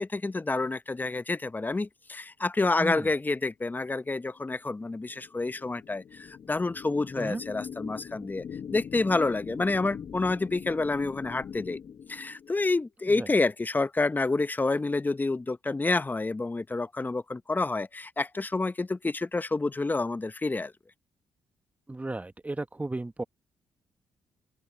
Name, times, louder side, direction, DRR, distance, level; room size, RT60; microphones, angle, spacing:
voice 1, 0.0-8.4 8.7-11.8 12.1-20.7, left 3 dB, 20° left, 0.8 m, -28 dB
voice 2, 2.8-3.1 7.2-7.4 13.1-13.3 21.9-23.2, right 2 dB, 20° right, 1.3 m, -34 dB
sound 1, 4.0-12.8, left 7 dB, 55° left, 0.9 m, -43 dB
open air
hypercardioid pair, 50°, 8 cm